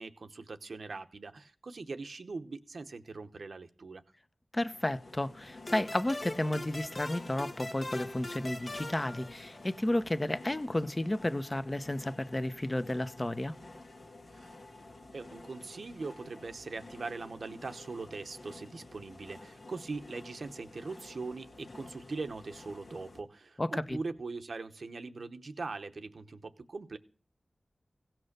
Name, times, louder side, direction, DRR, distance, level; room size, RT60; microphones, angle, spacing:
voice 1, 0.0-4.0 14.3-14.5 15.1-27.0, right 3 dB, 75° right, 0.9 m, -41 dB
voice 2, 4.5-13.5 23.6-24.0, left 1 dB, 30° left, 0.8 m, -32 dB
sound 1, 4.7-23.2, left 2 dB, 75° left, 1.7 m, -51 dB
sound 2, 5.7-10.0, left 2 dB, 50° left, 1.1 m, -42 dB
16.5 x 6.1 x 6.7 m
cardioid pair, 50°, 0 cm